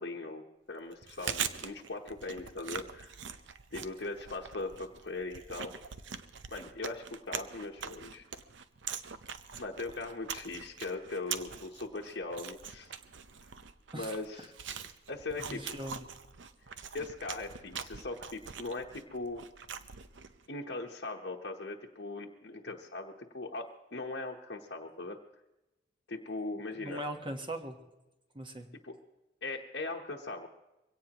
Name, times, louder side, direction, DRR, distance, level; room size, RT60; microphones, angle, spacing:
voice 1, 0.0-3.2 3.7-5.7 6.5-8.3 9.6-12.9 13.9-14.5 15.1-15.8 16.9-19.5 20.5-25.2 26.1-27.0 28.8-28.9 29.4-30.5, left 3 dB, 60° left, -2 dB, 1.0 m, -40 dB
Chewing mastication, 0.9-20.4, right 7 dB, 85° right, 0.8 m, -43 dB
voice 2, 13.9-14.5 15.5-16.0 26.7-27.8 28.3-28.7, right 1 dB, 25° right, 5 dB, 1.2 m, -40 dB
23.0 x 17.5 x 3.0 m, 1.0 s
head